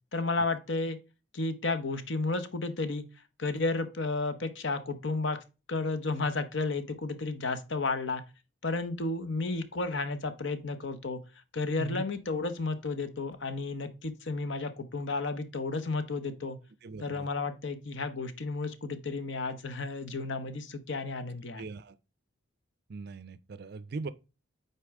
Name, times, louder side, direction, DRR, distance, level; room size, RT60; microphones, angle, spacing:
voice 1, 0.1-1.0 1.3-3.0 3.4-5.4 5.7-8.2 8.6-11.2 11.5-16.6 17.0-21.7, left 3 dB, 60° left, 0.8 m, -32 dB
voice 2, 16.8-17.3 21.6-22.0 22.9-24.1, right 4 dB, 50° right, 0.4 m, -39 dB
8.1 x 4.5 x 3.6 m
head